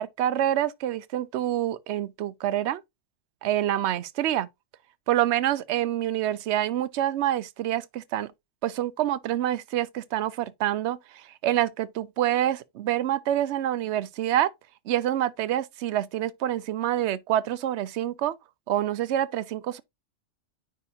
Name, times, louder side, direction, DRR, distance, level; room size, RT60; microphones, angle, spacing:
voice 1, 0.0-2.8 3.4-4.5 5.1-8.3 8.6-14.5 14.9-18.3 18.7-19.8, right 12 dB, 70° right, 0.9 m, -27 dB
9.6 x 3.7 x 2.8 m
omnidirectional pair, 1.2 m